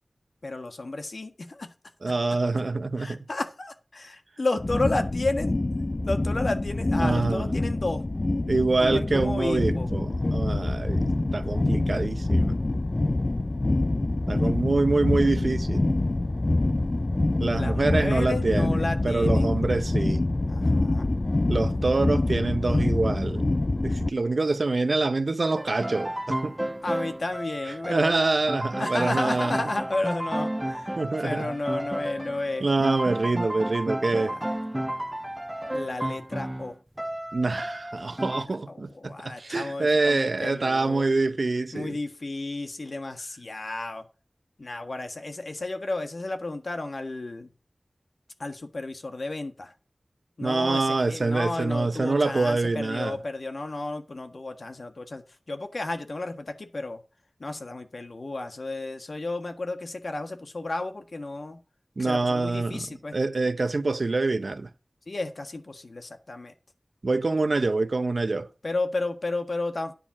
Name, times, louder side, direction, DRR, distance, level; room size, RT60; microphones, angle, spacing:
voice 1, 0.4-1.7 2.1-2.2 3.0-5.6 6.0-8.0 8.8-9.9 17.6-19.5 20.5-21.1 26.8-28.1 28.8-32.6 34.0-34.5 35.7-36.7 38.7-41.0 41.7-44.0 44.6-47.5 48.4-49.7 50.4-57.0 57.4-61.6 62.0-63.1 65.1-66.5 68.6-69.9, left 2 dB, 70° left, 1.5 m, -32 dB
voice 2, 2.0-3.2 7.0-7.5 8.5-12.6 14.3-15.9 17.4-20.2 21.5-23.4 23.8-26.6 27.9-29.6 31.0-31.5 32.6-34.4 37.3-42.0 50.4-53.2 62.0-62.9 63.1-64.7 67.0-68.5, right 3 dB, 70° right, 0.7 m, -25 dB
sound 1, 4.6-24.1, left 2 dB, 45° left, 0.5 m, -26 dB
sound 2, 25.5-38.4, right 1 dB, 15° right, 0.4 m, -32 dB
10.0 x 4.4 x 7.3 m
wide cardioid pair, 60°, 0 cm